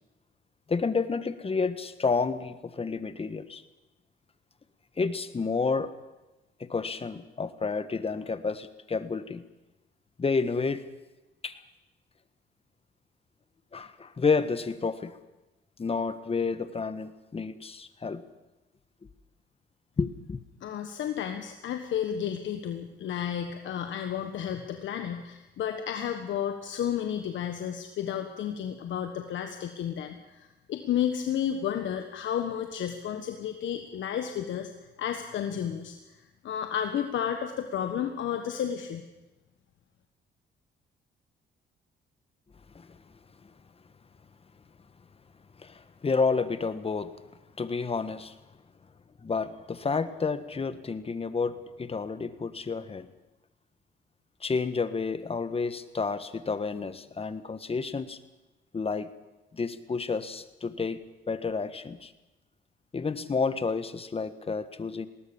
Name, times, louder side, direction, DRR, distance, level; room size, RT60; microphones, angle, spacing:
voice 1, 0.7-3.6 5.0-5.9 6.6-9.4 10.2-10.8 11.4-11.6 13.7-15.2 15.8-18.2 20.0-20.4 42.7-43.0 45.6-47.1 47.6-48.3 49.2-53.1 54.4-58.2 58.7-59.1 59.5-62.1 62.9-65.1, left 4 dB, 30° left, 12 dB, 1.4 m, -30 dB
voice 2, 20.6-34.7 35.0-36.2 36.4-39.0, left 9 dB, 70° left, 6 dB, 1.4 m, -32 dB
20.5 x 18.5 x 7.1 m, 1.0 s
cardioid pair, 90°, 20 cm